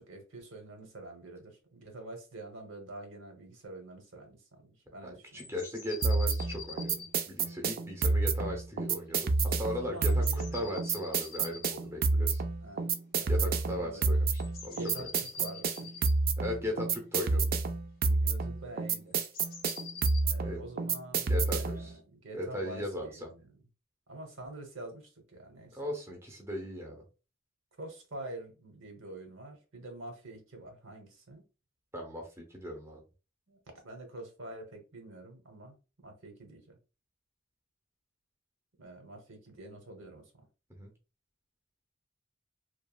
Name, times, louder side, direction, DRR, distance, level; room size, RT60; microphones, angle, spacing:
voice 1, 0.0-5.5 9.8-10.6 11.9-12.0 12.6-12.9 13.2-14.2 14.7-16.1 18.2-19.2 20.2-23.5 24.1-25.8 27.8-31.4 33.5-35.8 36.0-36.8 38.8-40.5, right 2 dB, 75° right, 1.0 m, -46 dB
voice 2, 5.0-6.9 7.3-12.4 13.3-15.1 16.4-17.5 18.1-18.2 20.4-20.6 21.3-21.9 22.3-23.3 25.7-27.0 31.9-33.0 40.7-40.9, equal, 10° right, 0.6 m, -38 dB
sound 1, 5.4-7.1 9.6-11.7 12.3-12.4 14.3-16.2 19.1-20.2, left 6 dB, 45° left, 0.6 m, -46 dB
sound 2, 6.0-21.9, right 3 dB, 45° right, 0.3 m, -29 dB
3.0 x 2.3 x 2.3 m
head